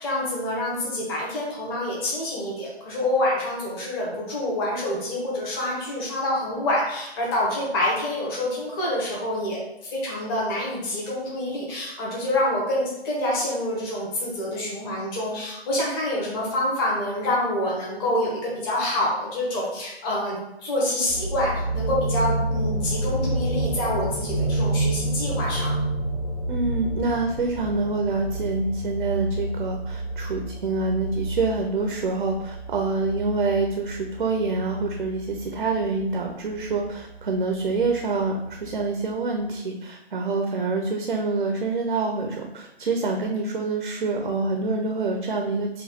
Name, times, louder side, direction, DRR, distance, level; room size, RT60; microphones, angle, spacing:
voice 1, 0.0-25.8, left 1 dB, 20° left, -4 dB, 1.2 m, -27 dB
sound 1, 21.1-38.9 39.3-39.4, right 2 dB, 50° left, 1.4 m, -29 dB
voice 2, 26.5-45.8, right 3 dB, 55° right, 2 dB, 0.7 m, -26 dB
5.0 x 2.5 x 3.9 m, 0.85 s
figure-of-eight pair, 135°, 32 cm